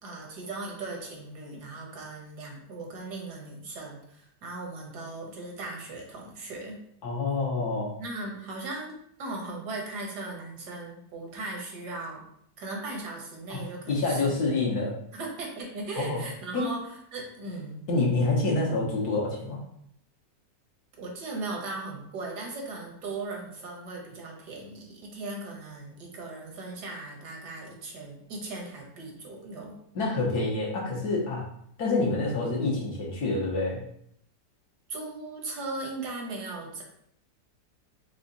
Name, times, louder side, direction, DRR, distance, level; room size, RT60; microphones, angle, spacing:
voice 1, 0.0-6.8 8.0-8.9 9.2-12.2 12.6-14.5 15.1-17.8 21.0-29.8 34.9-36.8, right 2 dB, 70° right, 0 dB, 1.6 m, -38 dB
voice 2, 7.0-7.9 13.5-13.6 13.9-14.9 16.0-16.2 16.5-16.7 17.9-19.6 29.9-31.5 31.8-33.8, left 3 dB, 65° left, -3 dB, 1.6 m, -27 dB
4.9 x 2.4 x 3.9 m, 0.71 s
omnidirectional pair, 1.9 m